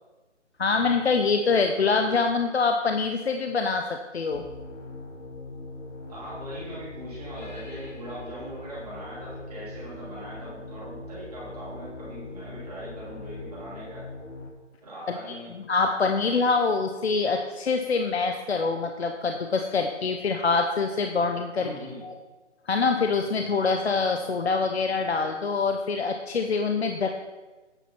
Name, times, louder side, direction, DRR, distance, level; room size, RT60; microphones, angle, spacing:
voice 1, 0.6-4.5 15.1-15.2 15.7-21.7 22.0-22.1 22.7-27.1, left 4 dB, 60° left, 5 dB, 0.7 m, -25 dB
sound 1, 4.3-14.5, left 2 dB, 90° left, 1.7 m, -41 dB
voice 2, 6.1-14.1 14.8-15.5 21.5-22.1, right 1 dB, 30° right, -7 dB, 2.6 m, -40 dB
8.7 x 4.8 x 5.8 m, 1.2 s
figure-of-eight pair, 165°, 37 cm